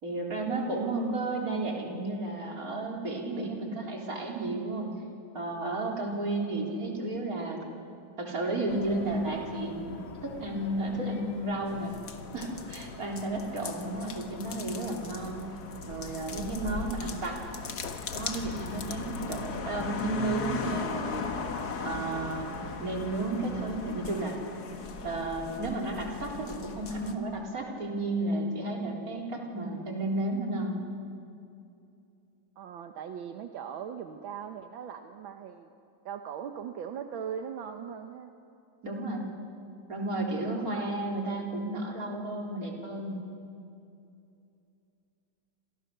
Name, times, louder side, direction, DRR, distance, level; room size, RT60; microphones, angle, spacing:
voice 1, 0.0-4.9 5.3-7.6 8.2-11.9 12.3-15.5 15.9-17.4 18.1-21.2 21.8-24.4 25.0-30.8 38.8-39.3 39.9-43.3, right 2 dB, 45° right, 0 dB, 4.1 m, -33 dB
sound 1, 8.7-23.8, left 4 dB, 75° left, 2.2 m, -47 dB
sound 2, 11.7-27.1, left 5 dB, 55° left, 2.0 m, -38 dB
voice 2, 16.6-17.0 32.6-35.7 36.1-38.3, right 8 dB, 80° right, 6 dB, 1.8 m, -39 dB
29.0 x 27.0 x 6.7 m, 2.6 s
omnidirectional pair, 2.2 m